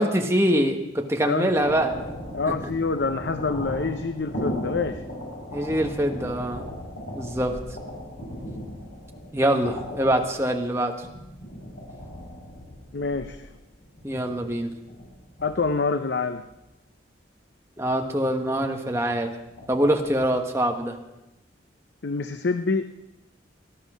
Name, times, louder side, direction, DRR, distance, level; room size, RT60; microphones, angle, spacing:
voice 1, 0.0-1.9 5.5-6.7 7.1-7.6 9.3-10.9 14.0-14.7 17.8-19.3 19.7-21.0, right 1 dB, 15° right, 3 dB, 1.3 m, -24 dB
sound 1, 1.5-15.9 16.4-16.6 17.8-18.3 19.4-20.3, equal, 80° left, 7.9 m, -37 dB
voice 2, 2.3-5.0 12.9-13.5 15.4-16.4 22.0-22.8, left 4 dB, 60° left, 9 dB, 0.6 m, -26 dB
18.5 x 11.0 x 6.2 m, 0.93 s
head